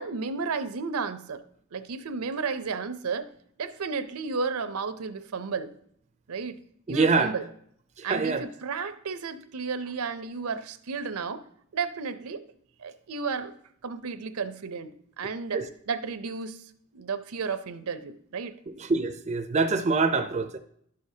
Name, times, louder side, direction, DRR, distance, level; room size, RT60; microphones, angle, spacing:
voice 1, 0.0-1.4 1.7-3.3 3.6-5.7 6.3-6.6 6.9-7.4 8.0-11.4 11.7-12.4 12.8-13.5 13.8-14.9 15.2-16.6 16.9-18.5, right 5 dB, 75° right, 0.6 m, -33 dB
voice 2, 6.9-7.3 8.0-8.4 15.5-15.7 18.9-20.6, right 4 dB, 30° right, 0.4 m, -25 dB
11.5 x 6.4 x 2.7 m
head